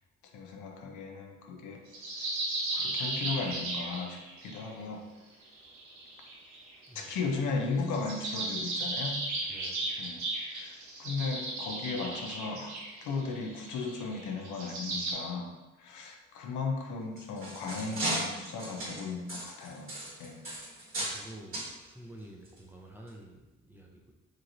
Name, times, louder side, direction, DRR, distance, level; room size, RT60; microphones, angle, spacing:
voice 1, 0.2-1.8 2.7-5.1 6.9-9.2 10.0-10.3 10.5-12.7 13.0-15.5 15.8-19.9 20.2-20.4, left 4 dB, 80° left, 2 dB, 0.6 m, -36 dB
sound 1, 1.9-4.6 5.4-7.1 7.8-15.1, right 2 dB, 70° right, 0.9 m, -36 dB
voice 2, 6.9-7.3 9.5-10.0 20.5-24.1, right 1 dB, 5° right, -2 dB, 0.4 m, -50 dB
sound 2, 17.0-21.2 21.5-21.7 22.4-22.6 23.1-23.2, right 1 dB, 45° right, 1.2 m, -36 dB
3.0 x 2.8 x 2.5 m, 1.1 s
cardioid pair, 90°, 30 cm